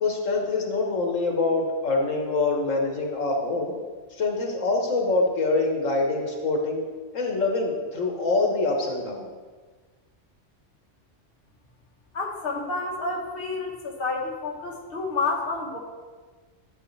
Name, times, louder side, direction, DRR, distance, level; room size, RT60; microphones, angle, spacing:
voice 1, 0.0-3.7 4.1-6.8 7.1-9.3, left 3 dB, 90° left, 1 dB, 1.7 m, -25 dB
voice 2, 12.1-15.8, left 3 dB, 50° left, -1 dB, 1.4 m, -29 dB
11.5 x 7.6 x 3.3 m, 1.4 s
omnidirectional pair, 1.3 m